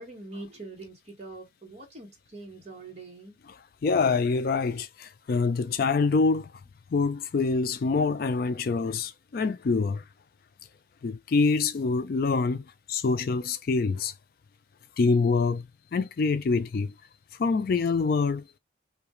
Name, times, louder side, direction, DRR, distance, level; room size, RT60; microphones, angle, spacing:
voice 1, 0.0-3.3, right 2 dB, 35° right, 1.1 m, -43 dB
voice 2, 3.4-6.5 6.9-10.0 11.0-14.1 15.0-16.9 17.4-18.4, left 4 dB, 50° left, 0.3 m, -26 dB
2.3 x 2.2 x 2.9 m
head